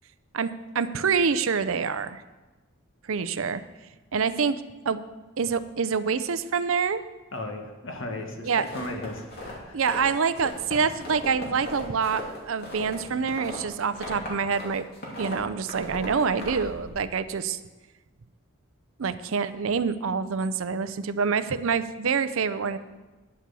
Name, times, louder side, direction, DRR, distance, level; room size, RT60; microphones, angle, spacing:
voice 1, 0.7-2.2 3.1-3.6 4.1-4.5 4.8-5.0 5.4-7.0 8.4-8.6 9.7-12.2 12.5-14.9 15.2-17.6 19.0-22.8, right 5 dB, 75° right, 13 dB, 0.6 m, -26 dB
voice 2, 7.3-9.8, left 2 dB, 65° left, 3 dB, 1.6 m, -36 dB
sound 1, 8.6-10.1 10.3-14.7 14.9-16.9, left 1 dB, 45° left, 2.9 m, -38 dB
10.5 x 7.5 x 6.9 m, 1.2 s
head